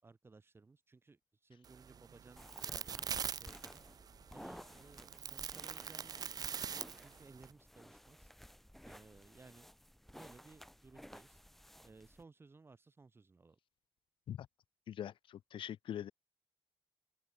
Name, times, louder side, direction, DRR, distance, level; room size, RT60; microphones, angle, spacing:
voice 1, 0.0-3.8 4.3-8.3 8.8-9.7 10.1-11.4 11.8-13.6, right 3 dB, 25° right, 5.6 m, -60 dB
sound 1, 1.6-7.5, right 7 dB, 45° right, 0.5 m, -43 dB
sound 2, 2.4-12.2, equal, 5° left, 3.6 m, -56 dB
voice 2, 14.9-16.1, left 10 dB, 75° left, 0.8 m, -43 dB
open air
cardioid pair, 120°, 9 cm